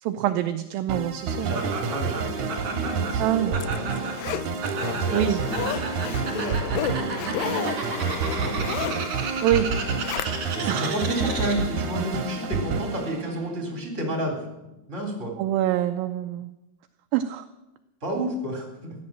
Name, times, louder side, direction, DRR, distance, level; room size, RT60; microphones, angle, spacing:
voice 1, 0.0-1.6 3.2-3.5 5.1-5.4 9.4-9.7 10.7-10.9 15.4-16.5 17.1-17.5, right 12 dB, 80° right, 8 dB, 2.2 m, -25 dB
sound 1, 0.9-13.8, right 5 dB, 60° right, 2.7 m, -29 dB
voice 2, 1.4-4.1 4.9-9.2 10.6-14.4 14.6-15.3 18.0-18.9, right 1 dB, 20° right, 1 dB, 3.7 m, -32 dB
Laughter, 1.5-11.8, right 4 dB, 45° right, 3.1 m, -34 dB
Zipper (clothing), 3.1-10.7 11.1-11.2, left 12 dB, 80° left, 2.0 m, -34 dB
15.0 x 11.0 x 7.6 m, 0.96 s
omnidirectional pair, 4.5 m